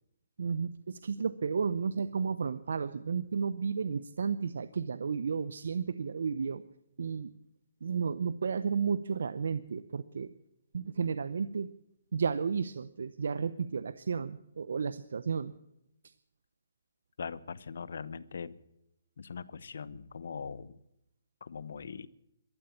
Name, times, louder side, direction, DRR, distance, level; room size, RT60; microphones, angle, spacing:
voice 1, 0.4-6.6 7.0-7.3 7.8-10.3 10.7-11.7 12.1-15.5 16.0-16.1, right 6 dB, 70° right, 14 dB, 0.7 m, -33 dB
voice 2, 17.2-18.6 19.2-20.8 21.4-22.1, left 6 dB, 70° left, 17 dB, 1.0 m, -41 dB
15.0 x 13.0 x 7.2 m, 0.81 s
hypercardioid pair, 150°, 0 cm